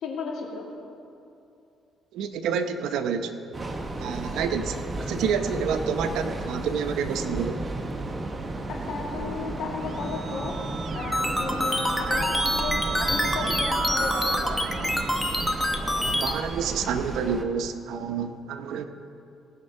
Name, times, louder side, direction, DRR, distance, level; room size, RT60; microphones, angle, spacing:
voice 1, 0.0-0.7 8.7-10.5 10.9-14.9, left 4 dB, 70° left, -1 dB, 2.3 m, -34 dB
voice 2, 2.1-3.3 4.0-4.7 5.0-7.6 15.9-18.9, right 6 dB, 80° right, 8 dB, 0.8 m, -28 dB
Train, 3.5-17.4, right 2 dB, 25° right, 0.9 m, -33 dB
Keyboard (musical), 9.6-16.2, right 6 dB, 50° right, 0.4 m, -34 dB
sound 1, 11.1-16.3, left 1 dB, 10° left, 1.1 m, -26 dB
18.5 x 6.7 x 5.4 m, 2.7 s
cardioid pair, 100°, 0 cm